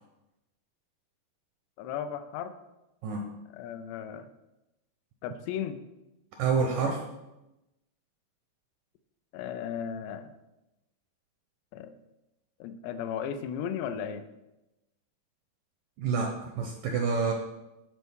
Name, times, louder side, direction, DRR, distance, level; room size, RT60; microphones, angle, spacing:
voice 1, 1.8-2.6 3.5-4.3 5.2-5.8 9.3-10.3 11.7-11.9 12.6-14.3, left 8 dB, 85° left, 10 dB, 2.8 m, -35 dB
voice 2, 6.4-7.0 16.0-17.3, right 5 dB, 75° right, 3 dB, 2.0 m, -28 dB
11.5 x 4.5 x 6.3 m, 0.97 s
omnidirectional pair, 4.8 m